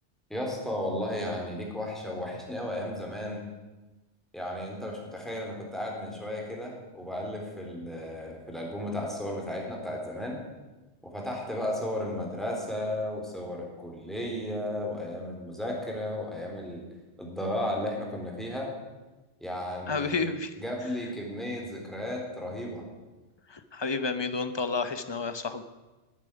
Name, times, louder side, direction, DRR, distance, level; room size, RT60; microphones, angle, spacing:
voice 1, 0.3-3.5 4.3-10.4 11.0-16.8 17.2-18.7 19.4-20.3 20.6-22.8, left 1 dB, ahead, -1 dB, 3.7 m, -34 dB
voice 2, 19.9-20.5 23.5-25.6, left 4 dB, 25° left, 11 dB, 0.9 m, -30 dB
13.0 x 8.9 x 9.8 m, 1.1 s
omnidirectional pair, 1.2 m